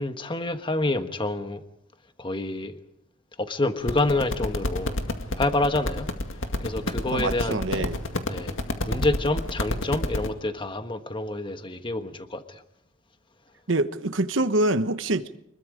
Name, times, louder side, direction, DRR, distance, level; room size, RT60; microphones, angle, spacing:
voice 1, 0.0-1.6 2.2-2.8 3.4-5.0 5.4-6.1 6.6-7.9 8.3-8.5 8.8-12.6, left 2 dB, 25° left, 1.3 m, -27 dB
sound 1, 3.8-10.3, left 1 dB, 80° left, 2.1 m, -29 dB
voice 2, 7.1-8.0 13.7-15.4, right 2 dB, 70° right, 1.1 m, -25 dB
25.0 x 22.0 x 5.1 m
head